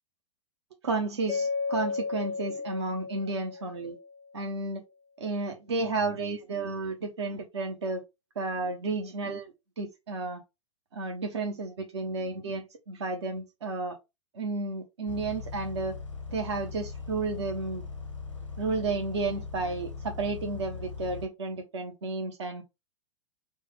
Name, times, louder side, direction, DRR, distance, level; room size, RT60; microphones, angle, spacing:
voice 1, 0.8-4.0 4.3-4.8 5.2-8.0 8.4-10.4 10.9-14.0 14.3-16.0 16.3-17.8 18.6-22.6, right 3 dB, 65° right, 0.8 m, -32 dB
Mallet percussion, 1.3-4.3, left 4 dB, 80° right, 1.2 m, -34 dB
Bus, 15.1-21.3, left 5 dB, 85° left, 0.6 m, -40 dB
3.2 x 2.2 x 4.1 m
figure-of-eight pair, 100°, 16 cm